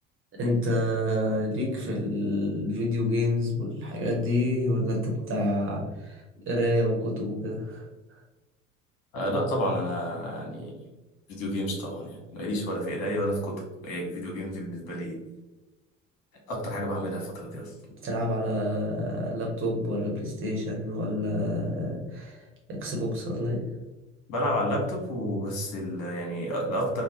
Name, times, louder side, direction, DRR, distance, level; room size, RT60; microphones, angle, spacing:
voice 1, 0.3-7.8 8.1-8.2 18.0-23.6, left 1 dB, 30° right, -2 dB, 1.0 m, -28 dB
voice 2, 9.1-10.7 11.3-13.5 13.8-15.2 16.5-17.7 24.3-27.0, equal, 50° left, -1 dB, 1.2 m, -30 dB
3.2 x 2.0 x 2.9 m, 1.1 s
figure-of-eight pair, 65°, 38 cm